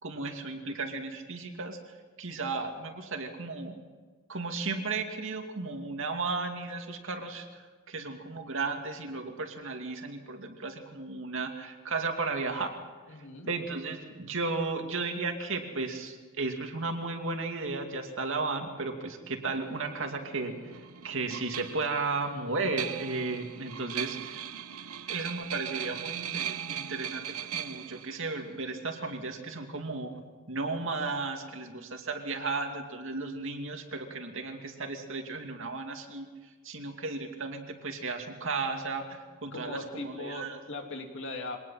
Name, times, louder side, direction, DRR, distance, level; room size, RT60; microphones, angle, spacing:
voice 1, 0.0-1.8 2.2-3.8 4.3-12.7 13.5-24.4 25.1-30.2 30.5-36.3 36.6-40.6, right 3 dB, 60° right, 4 dB, 2.5 m, -34 dB
voice 2, 13.1-13.5 39.5-41.6, left 2 dB, 60° left, 3 dB, 2.8 m, -39 dB
sound 1, 19.5-29.2, right 9 dB, 85° right, 0.9 m, -39 dB
24.0 x 19.0 x 5.8 m, 1.4 s
head